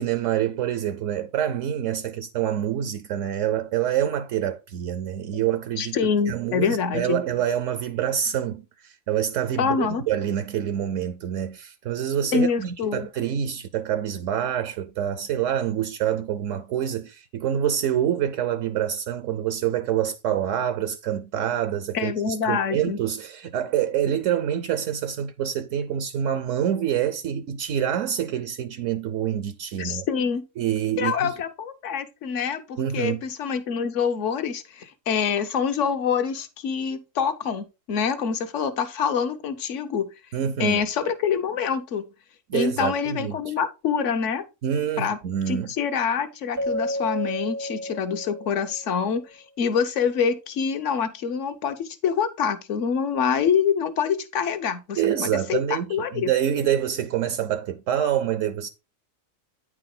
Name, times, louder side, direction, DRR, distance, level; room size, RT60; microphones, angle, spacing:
voice 1, 0.0-6.0 6.3-30.1 30.6-31.3 32.8-33.2 40.3-40.8 42.5-43.4 44.6-45.7 55.0-58.7, right 10 dB, 75° right, 0.9 m, -26 dB
voice 2, 5.8-7.2 9.6-10.0 12.3-13.1 21.9-23.0 29.8-30.4 31.0-40.1 40.6-42.0 42.5-44.4 45.0-45.2 45.5-56.3, left 6 dB, 70° left, 1.2 m, -26 dB
Keyboard (musical), 46.6-49.0, equal, 30° right, 0.5 m, -31 dB
9.2 x 4.8 x 3.8 m
omnidirectional pair, 1.3 m